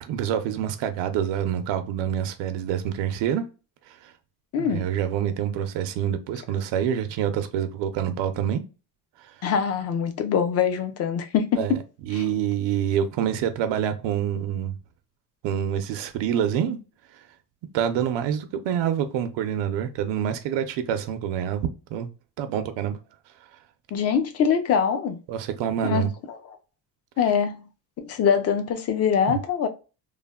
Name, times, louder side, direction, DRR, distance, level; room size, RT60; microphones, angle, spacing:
voice 1, 0.0-3.4 3.9-4.1 4.6-8.6 11.6-11.7 12.0-14.8 15.4-16.8 17.7-22.1 22.4-23.0 25.3-26.1 29.3-29.4, right 9 dB, 80° right, 0.6 m, -26 dB
voice 2, 4.5-4.8 9.4-11.6 12.1-12.3 23.9-25.2 25.8-26.1 27.2-27.6 28.0-29.7, left 7 dB, 40° left, 0.4 m, -23 dB
3.2 x 2.0 x 2.2 m
cardioid pair, 160°, 42 cm